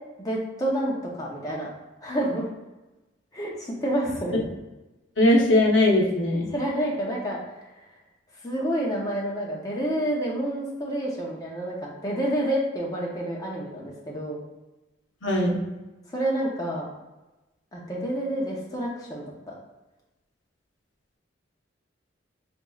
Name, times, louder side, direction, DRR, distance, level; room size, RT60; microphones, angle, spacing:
voice 1, 0.2-1.7 2.0-2.4 3.3-4.3 6.5-7.4 8.4-14.4 16.1-16.9 17.7-19.5, right 1 dB, 20° left, -3 dB, 0.6 m, -28 dB
voice 2, 5.2-6.5 15.2-15.6, left 1 dB, 75° left, -1 dB, 0.8 m, -20 dB
5.1 x 3.0 x 2.3 m, 1.1 s
head